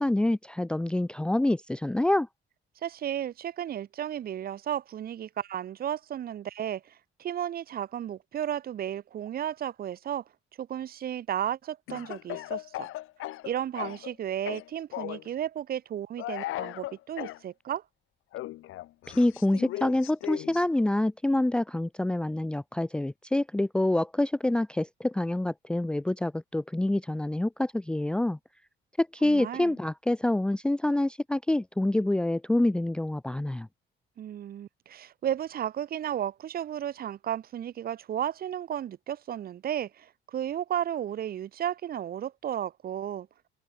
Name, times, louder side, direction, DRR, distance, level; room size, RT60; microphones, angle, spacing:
voice 1, 0.0-2.3 19.1-28.4 29.0-33.7, left 1 dB, 5° left, 0.7 m, -26 dB
voice 2, 2.8-6.9 7.2-10.2 10.6-12.9 13.4-17.8 29.2-29.7 34.2-43.3, right 10 dB, 45° right, 5.4 m, -33 dB
Speech / Cough, 11.9-14.1 14.4-15.3 16.2-17.4 18.3-20.6, left 15 dB, 90° left, 5.8 m, -37 dB
cardioid pair, 180°, 21 cm